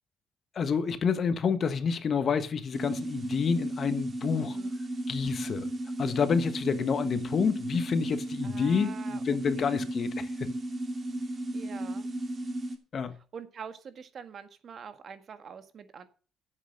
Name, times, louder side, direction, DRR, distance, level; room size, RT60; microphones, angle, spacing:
voice 1, 0.5-4.6 5.1-5.7 6.0-10.5 12.9-13.1, left 6 dB, 55° left, 1.4 m, -28 dB
sound 1, 2.7-12.8, right 1 dB, 40° right, 2.7 m, -34 dB
voice 2, 4.3-4.7 8.4-9.2 9.6-9.9 11.5-12.1 13.3-16.1, right 7 dB, 55° right, 1.7 m, -45 dB
9.9 x 8.1 x 6.6 m
supercardioid pair, 70°, 0 cm